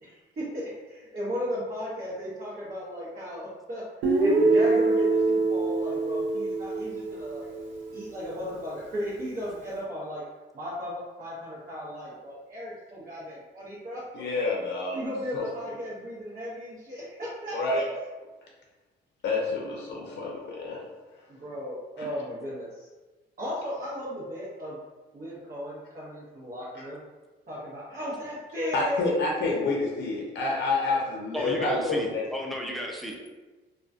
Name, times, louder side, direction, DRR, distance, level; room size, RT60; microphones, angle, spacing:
voice 1, 0.0-3.8 4.2-7.5 7.9-10.2 10.5-14.0 14.9-17.8 21.3-22.9 23.4-24.8 25.1-27.0 27.5-29.0, equal, 45° right, -8 dB, 0.8 m, -36 dB
Guitar, 4.0-8.0, right 3 dB, 70° right, 0.5 m, -24 dB
voice 2, 14.1-15.0 15.3-15.5 17.5-17.9 19.2-21.4 22.0-22.2 28.7-32.2, left 3 dB, 60° left, -2 dB, 0.5 m, -29 dB
voice 3, 31.3-33.3, equal, ahead, -1 dB, 0.4 m, -33 dB
2.3 x 2.2 x 2.4 m, 1.3 s
cardioid pair, 90°, 20 cm